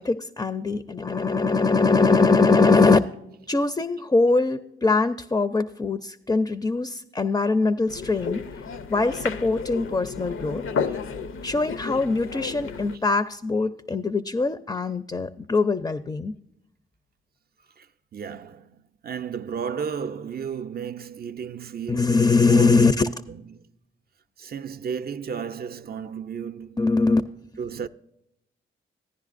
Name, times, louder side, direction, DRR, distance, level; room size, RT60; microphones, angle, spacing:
voice 1, 0.0-3.0 3.5-8.4 8.9-10.6 11.4-16.3 21.9-23.1 26.8-27.2, left 3 dB, 20° left, 0.4 m, -22 dB
sound 1, 7.9-13.0, left 5 dB, 70° left, 0.5 m, -32 dB
voice 2, 18.1-23.0 23.3-23.5 24.4-27.0 27.6-27.9, right 7 dB, 45° right, 0.4 m, -33 dB
15.0 x 10.5 x 2.5 m
cardioid pair, 55°, 21 cm